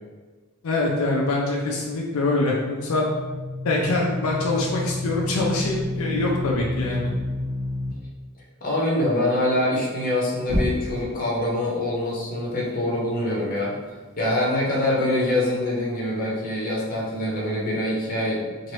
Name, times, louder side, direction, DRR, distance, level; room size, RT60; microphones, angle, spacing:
voice 1, 0.6-3.0 3.6-7.1, left 2 dB, 80° left, -2 dB, 0.5 m, -24 dB
sound 1, 2.1-7.9 10.4-11.2, left 1 dB, 85° right, 1.2 m, -30 dB
voice 2, 8.6-13.7 14.2-18.7, left 1 dB, 40° left, -5 dB, 0.8 m, -24 dB
2.9 x 2.6 x 3.1 m, 1.3 s
head